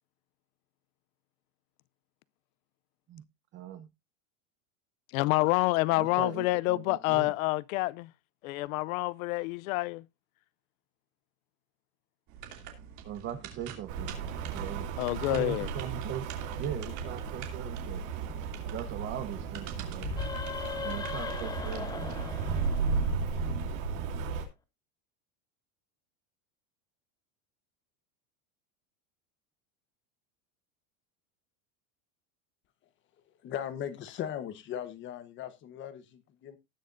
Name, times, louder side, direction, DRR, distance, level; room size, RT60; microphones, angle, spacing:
voice 1, 3.5-3.9 6.0-7.3 13.0-14.1 14.5-14.9 15.3-16.3 16.6-18.0 18.4-20.2 20.8-22.1, right 10 dB, 25° right, 0.9 m, -40 dB
voice 2, 5.1-8.1 8.4-10.0 15.0-15.7, left 21 dB, 70° left, 0.6 m, -28 dB
sound 1, 12.3-22.2, right 9 dB, 40° right, 2.7 m, -47 dB
Rain, 13.9-24.4, right 5 dB, 60° right, 3.3 m, -34 dB
sound 2, 20.0-23.6, left 5 dB, 10° left, 0.6 m, -38 dB
voice 3, 33.4-36.6, left 10 dB, 25° left, 1.1 m, -38 dB
19.0 x 6.5 x 2.6 m
supercardioid pair, 165°, 43 cm